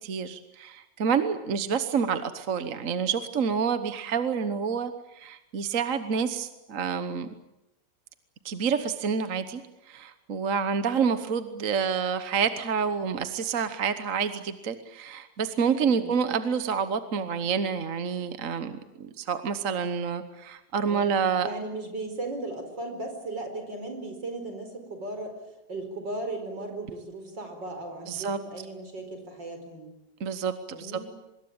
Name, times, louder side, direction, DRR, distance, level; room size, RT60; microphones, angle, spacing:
voice 1, 0.0-7.3 8.4-21.5 28.1-28.4 30.2-31.0, right 6 dB, 50° right, 10 dB, 1.4 m, -28 dB
voice 2, 21.4-25.3 25.7-29.9 30.7-31.0, right 2 dB, 70° right, 5 dB, 5.5 m, -36 dB
25.5 x 21.0 x 8.8 m, 0.91 s
omnidirectional pair, 2.0 m